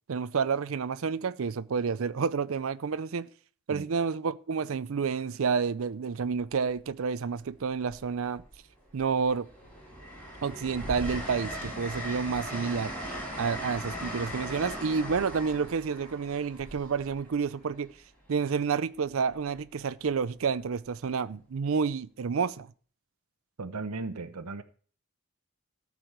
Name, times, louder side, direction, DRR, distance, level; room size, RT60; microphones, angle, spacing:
voice 1, 0.1-3.3 3.7-8.4 8.9-9.5 10.4-12.9 13.4-17.9 18.3-22.7, right 5 dB, 65° right, 0.5 m, -29 dB
Train, 6.4-6.5 7.8-8.6 9.0-17.7 19.3-19.6, equal, 10° left, 6.4 m, -39 dB
voice 2, 23.6-24.6, right 3 dB, 85° right, 0.8 m, -36 dB
14.0 x 4.8 x 7.9 m
head